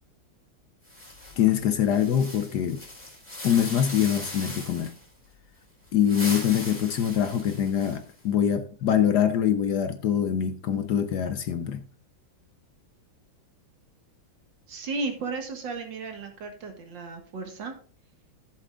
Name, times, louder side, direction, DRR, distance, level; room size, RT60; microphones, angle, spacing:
sound 1, 0.8-5.1 5.9-8.2, left 1 dB, 15° left, 3.7 m, -39 dB
voice 1, 1.4-2.8 3.4-4.9 5.9-11.8, left 9 dB, 65° left, 1.1 m, -24 dB
voice 2, 14.7-17.7, right 3 dB, 65° right, 2.3 m, -34 dB
15.0 x 7.2 x 2.5 m
omnidirectional pair, 2.2 m